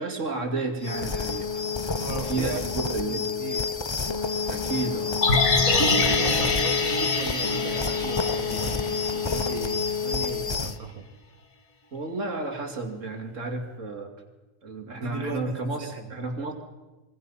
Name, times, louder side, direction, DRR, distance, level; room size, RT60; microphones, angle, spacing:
voice 1, 0.0-1.5 2.2-3.3 4.5-5.3 11.9-14.1 14.6-16.5, right 3 dB, 60° right, 3 dB, 2.9 m, -32 dB
sound 1, 0.8-10.8, left 5 dB, 30° left, 0.6 m, -29 dB
voice 2, 2.0-3.7 5.5-11.1 14.9-16.1, right 4 dB, 85° right, 2 dB, 2.2 m, -37 dB
sound 2, 5.2-9.4 9.7-9.8, left 3 dB, 70° left, 2.3 m, -25 dB
26.5 x 22.5 x 5.7 m, 1.1 s
omnidirectional pair, 1.5 m